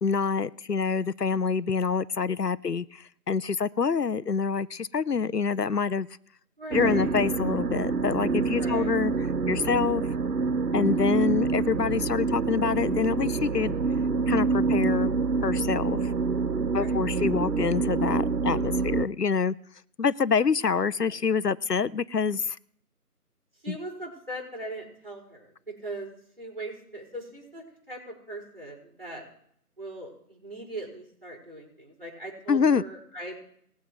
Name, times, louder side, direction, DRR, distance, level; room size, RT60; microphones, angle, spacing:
voice 1, 0.0-6.1 6.7-9.1 9.5-10.1 10.7-13.7 14.3-15.1 15.4-16.1 16.7-19.5 20.0-22.6 23.7-23.8 32.5-32.8, left 5 dB, 80° left, 17 dB, 0.8 m, -26 dB
voice 2, 6.6-7.1 8.6-8.9 16.8-17.0 21.0-21.2 23.6-26.1 26.4-29.2 29.8-33.4, right 1 dB, 35° right, -1 dB, 5.1 m, -40 dB
sound 1, 6.7-19.1, right 4 dB, 75° right, 0.9 m, -27 dB
21.0 x 7.5 x 3.1 m, 0.67 s
figure-of-eight pair, 180°, 47 cm